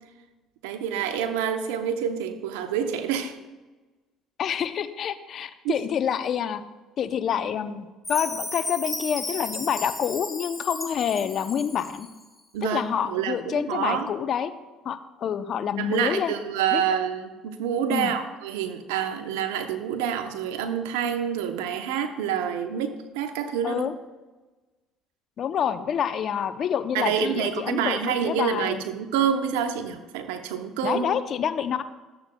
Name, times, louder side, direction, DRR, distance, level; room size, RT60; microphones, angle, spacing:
voice 1, 0.6-3.4 5.6-5.8 12.5-14.1 15.8-23.9 26.9-31.2, right 8 dB, 80° right, 7 dB, 0.8 m, -27 dB
voice 2, 4.4-6.6 7.0-12.1 12.6-14.5 14.8-16.3 16.7-16.8 17.9-18.1 23.6-23.9 25.4-28.8 30.8-31.8, left 8 dB, 55° left, 11 dB, 0.6 m, -27 dB
Chime, 8.0-12.1, left 2 dB, 5° left, 2.0 m, -35 dB
13.5 x 7.6 x 2.3 m, 1.2 s
hypercardioid pair, 70°, 0 cm